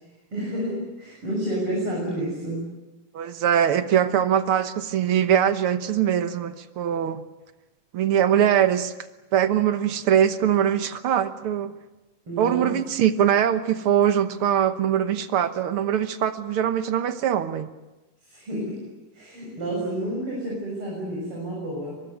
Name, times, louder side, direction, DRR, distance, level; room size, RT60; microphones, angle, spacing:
voice 1, 0.3-2.6 12.3-12.7 18.3-18.8 19.1-22.0, right 1 dB, 40° right, -3 dB, 7.8 m, -30 dB
voice 2, 3.1-7.2 7.9-8.9 9.3-11.7 12.4-17.7, right 9 dB, 65° right, 10 dB, 1.4 m, -22 dB
23.5 x 23.0 x 9.3 m, 1.1 s
omnidirectional pair, 3.8 m